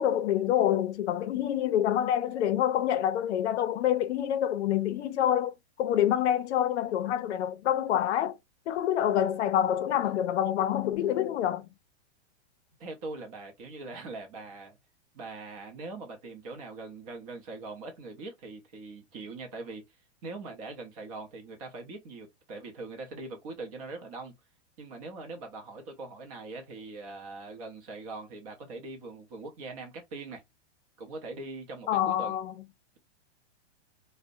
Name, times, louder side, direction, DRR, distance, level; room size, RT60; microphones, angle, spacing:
voice 1, 0.0-5.5 5.8-8.4 8.7-11.6 31.9-32.5, left 10 dB, 75° left, 0.5 m, -27 dB
voice 2, 12.8-14.8 15.1-19.8 20.2-24.3 24.8-30.4 31.0-32.4, right 3 dB, 35° right, 0.6 m, -42 dB
2.6 x 2.1 x 2.4 m
supercardioid pair, 160°, 34 cm